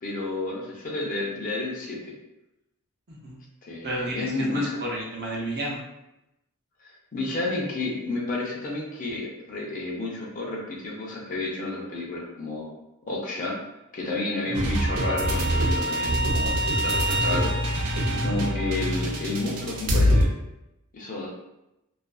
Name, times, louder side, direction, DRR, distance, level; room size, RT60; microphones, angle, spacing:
voice 1, 0.0-2.1 3.6-4.8 6.8-12.7 13.1-13.6 13.9-17.6 18.1-20.3 20.9-21.3, left 2 dB, 35° left, -2 dB, 0.5 m, -31 dB
voice 2, 3.1-3.4 3.8-5.8 14.4-14.7 18.1-18.4, right 1 dB, 45° right, -3 dB, 0.6 m, -32 dB
sound 1, 14.5-20.2, equal, 90° right, 0.4 m, -24 dB
2.4 x 2.2 x 2.3 m, 0.90 s
head